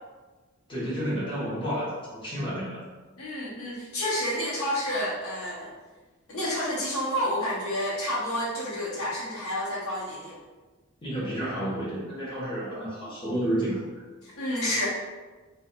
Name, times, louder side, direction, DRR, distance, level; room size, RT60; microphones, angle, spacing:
voice 1, 0.7-2.8 11.0-13.9, right 1 dB, 25° left, -8 dB, 1.0 m, -30 dB
voice 2, 3.2-5.7 6.3-10.4 14.2-14.9, equal, 80° left, -6 dB, 0.9 m, -29 dB
2.5 x 2.2 x 4.0 m, 1.3 s
head